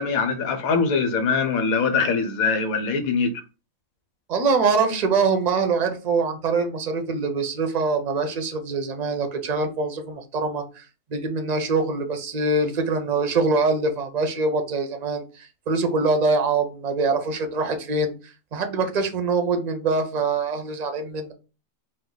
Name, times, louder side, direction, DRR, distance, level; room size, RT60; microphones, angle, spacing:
voice 1, 0.0-3.3, left 5 dB, 80° left, 1.2 m, -22 dB
voice 2, 4.3-10.8 11.1-18.1 18.5-21.3, right 3 dB, 40° right, 0.6 m, -24 dB
4.4 x 2.3 x 3.8 m
omnidirectional pair, 1.4 m